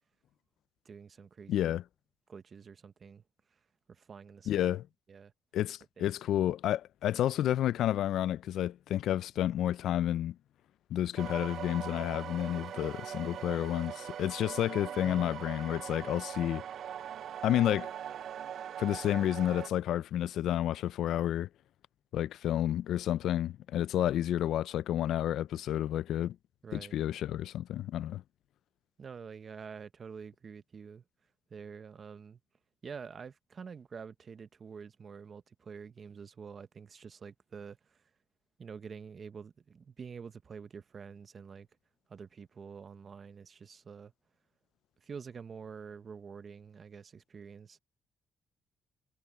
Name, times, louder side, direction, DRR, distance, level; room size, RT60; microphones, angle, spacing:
voice 1, 0.8-1.7 2.3-3.2 3.5-3.6 3.9-4.8 5.1-5.3 6.0-6.2 15.0-15.5 26.6-27.0 29.0-31.0 31.5-32.4 32.8-38.1 38.6-41.7 42.1-44.1 45.0-47.8, right 6 dB, 45° right, 1.1 m, -47 dB
voice 2, 1.5-1.8 4.5-4.9 5.5-10.4 10.9-16.6 17.4-17.9 18.8-21.5 22.1-26.4 26.7-28.2, left 12 dB, 80° left, 0.4 m, -30 dB
sound 1, 11.2-19.7, right 9 dB, 65° right, 0.5 m, -41 dB
cardioid pair, 90°, 0 cm